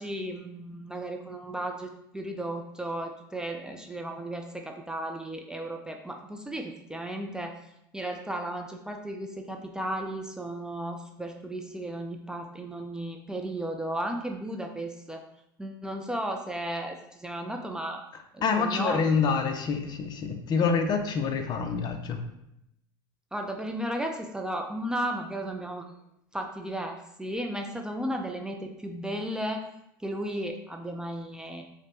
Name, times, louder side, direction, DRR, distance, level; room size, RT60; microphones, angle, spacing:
voice 1, 0.0-7.5 7.9-15.2 15.6-18.0 18.3-19.0 23.3-25.9 26.3-29.7 30.0-31.6, right 1 dB, 5° right, 3 dB, 0.4 m, -34 dB
voice 2, 18.4-22.2, left 5 dB, 40° left, 6 dB, 0.5 m, -26 dB
5.0 x 2.1 x 2.8 m, 0.81 s
hypercardioid pair, 95°, 11 cm